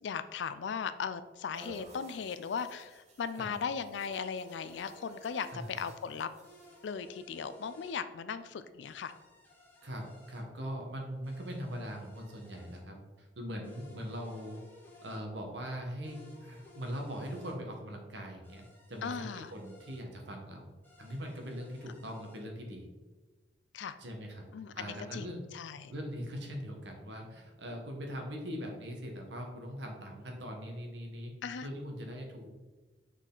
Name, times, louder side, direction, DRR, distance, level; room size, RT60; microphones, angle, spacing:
voice 1, 0.0-6.3 6.8-9.1 19.0-19.5 23.7-24.0 24.5-25.9 31.4-31.7, left 6 dB, 70° left, 13 dB, 0.4 m, -38 dB
sound 1, 1.5-7.0, right 1 dB, 40° right, 1.1 m, -55 dB
sound 2, 4.0-5.6 6.4-8.0 8.8-10.4 11.2-12.8 13.6-15.2 16.0-17.6 18.4-20.0 20.8-22.4, left 1 dB, 10° left, 1.1 m, -58 dB
voice 2, 9.8-14.6 15.0-18.6 18.9-20.7 21.0-22.9 24.0-24.5 24.7-25.4 25.9-31.3 31.6-32.5, equal, 65° right, 2 dB, 1.2 m, -41 dB
6.2 x 4.1 x 3.8 m, 1.3 s
head